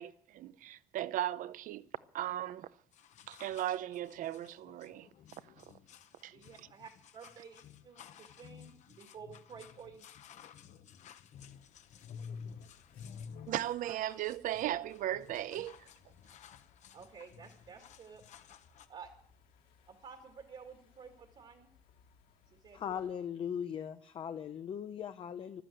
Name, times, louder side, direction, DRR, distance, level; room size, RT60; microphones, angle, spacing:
voice 1, 0.0-1.9 2.1-2.7 3.3-5.1 5.6-5.7 6.2-6.3 13.5-15.9, right 13 dB, 65° right, 0.7 m, -37 dB
sound 1, 2.9-18.9, left 7 dB, 55° left, 1.0 m, -53 dB
voice 2, 6.3-10.1 13.8-14.2 16.9-18.2 18.9-19.1 19.9-21.7 22.5-23.2, right 6 dB, 45° right, 1.9 m, -52 dB
sound 2, 11.4-23.1, left 6 dB, 85° left, 2.6 m, -66 dB
voice 3, 22.7-25.6, left 8 dB, 40° left, 0.6 m, -39 dB
14.5 x 12.5 x 7.8 m
cardioid pair, 175°, 14 cm